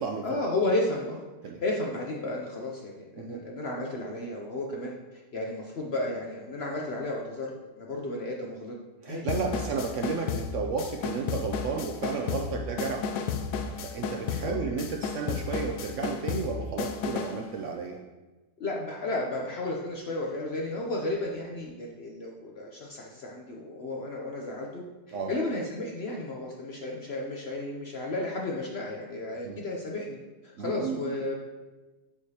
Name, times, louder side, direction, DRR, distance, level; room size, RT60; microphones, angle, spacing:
voice 1, 0.2-1.3 1.6-8.8 9.0-9.6 14.4-14.6 18.6-30.2 30.4-31.3, left 2 dB, 55° left, -1 dB, 0.7 m, -33 dB
voice 2, 9.0-13.2 13.8-18.0 25.1-25.3 29.4-29.6 30.6-31.1, right 5 dB, 65° right, 1 dB, 0.8 m, -33 dB
sound 1, 9.3-17.4, left 6 dB, 85° left, 1.1 m, -33 dB
8.4 x 4.9 x 2.8 m, 1.2 s
omnidirectional pair, 1.7 m